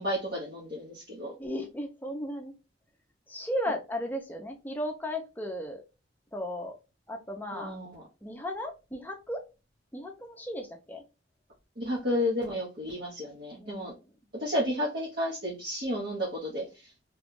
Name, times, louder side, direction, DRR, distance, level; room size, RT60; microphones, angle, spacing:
voice 1, 0.0-1.3 7.5-8.0 11.8-13.9 14.4-16.9, left 1 dB, 50° right, -6 dB, 1.1 m, -32 dB
voice 2, 1.4-2.5 3.3-5.8 6.3-6.7 7.1-7.8 8.2-9.4 9.9-11.0 13.6-13.9, equal, 10° left, 2 dB, 0.6 m, -35 dB
3.0 x 2.4 x 3.7 m, 0.28 s
head